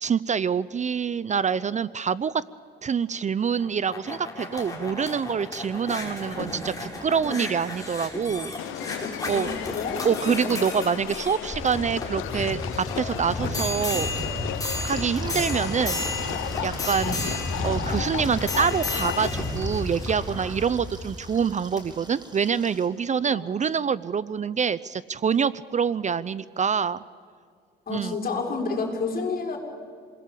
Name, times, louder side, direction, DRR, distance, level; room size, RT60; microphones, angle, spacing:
voice 1, 0.0-2.4 2.8-8.5 9.3-9.5 10.0-12.6 12.9-14.1 14.8-16.1 16.6-17.3 17.6-27.0 27.9-28.2, right 6 dB, 35° right, 18 dB, 0.6 m, -26 dB
sound 1, 3.5-21.2 21.8-21.9, left 2 dB, 15° left, 6.6 m, -32 dB
sound 2, 8.6-19.3, left 14 dB, 85° left, 0.7 m, -35 dB
voice 2, 9.3-10.0 10.2-10.5 23.2-23.4 27.9-29.6, left 4 dB, 50° left, 0 dB, 6.1 m, -30 dB
sound 3, 12.3-22.9, right 2 dB, 20° right, 3.7 m, -43 dB
28.0 x 21.0 x 8.5 m, 2.2 s
cardioid pair, 90°, 20 cm